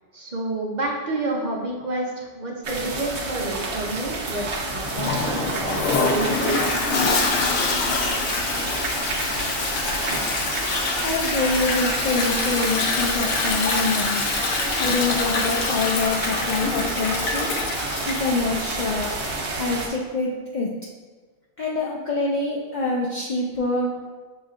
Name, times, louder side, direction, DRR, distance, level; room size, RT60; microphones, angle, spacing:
voice 1, 0.1-6.5, right 2 dB, 45° right, -3 dB, 0.7 m, -29 dB
sound 1, 2.6-19.9, right 2 dB, 70° right, 1.0 m, -30 dB
Toilet flush, 4.8-19.5, left 3 dB, 90° left, 1.0 m, -25 dB
voice 2, 11.0-14.3 14.8-17.5 18.1-19.1 19.6-20.7 21.6-24.1, left 3 dB, 60° left, -2 dB, 0.5 m, -25 dB
6.6 x 3.1 x 2.4 m, 1.4 s
omnidirectional pair, 1.2 m